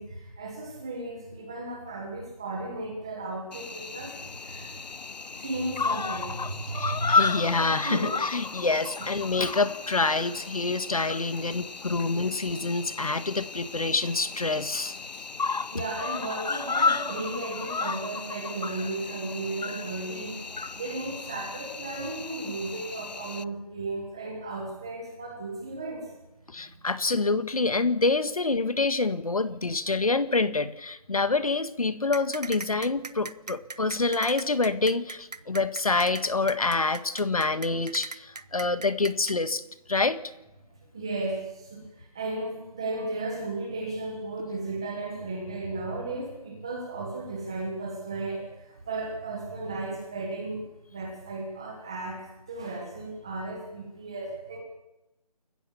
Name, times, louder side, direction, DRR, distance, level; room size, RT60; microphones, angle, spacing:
voice 1, 0.0-4.2 4.4-4.7 5.4-7.2 7.8-8.1 15.7-20.4 20.7-26.0 40.9-41.8 42.1-48.5 48.9-50.6 50.9-54.6, right 2 dB, 5° right, 1 dB, 1.3 m, -34 dB
Cricket, 3.5-23.4, left 4 dB, 80° left, 0.8 m, -33 dB
voice 2, 6.7-14.9 26.5-39.6 39.9-40.2, left 3 dB, 60° left, 12 dB, 1.6 m, -27 dB
sound 1, 32.1-39.4, right 3 dB, 70° right, 1.2 m, -38 dB
29.0 x 15.5 x 7.1 m, 0.95 s
figure-of-eight pair, 180°, 21 cm